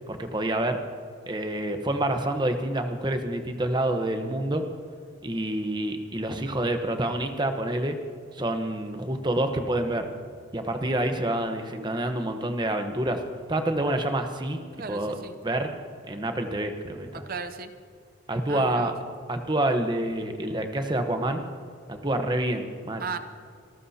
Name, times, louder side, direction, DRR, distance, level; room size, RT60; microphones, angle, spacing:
voice 1, 0.1-0.8 1.3-4.6 5.2-8.0 8.3-10.1 10.5-13.2 13.5-14.6 14.9-15.2 15.4-15.7 16.1-17.2 18.3-18.9 19.3-21.4 21.9-23.0, right 1 dB, 20° right, 6 dB, 1.0 m, -27 dB
voice 2, 14.8-15.3 17.1-17.7 18.5-18.9 23.0-23.2, right 5 dB, 45° right, 10 dB, 0.6 m, -35 dB
27.0 x 13.5 x 2.8 m, 2.2 s
head